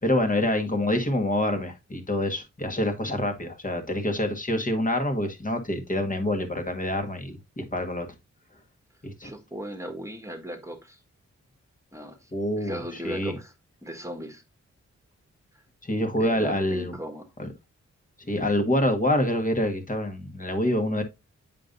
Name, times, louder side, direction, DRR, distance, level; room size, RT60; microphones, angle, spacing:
voice 1, 0.0-8.0 9.0-9.3 12.3-13.3 15.8-16.9 17.4-17.5 18.3-21.0, left 1 dB, 25° left, 1.6 m, -26 dB
voice 2, 9.2-11.0 11.9-12.3 12.6-13.5 13.8-14.4 16.2-17.3, equal, 10° right, 1.5 m, -37 dB
7.5 x 5.2 x 2.6 m
cardioid pair, 50°, 30 cm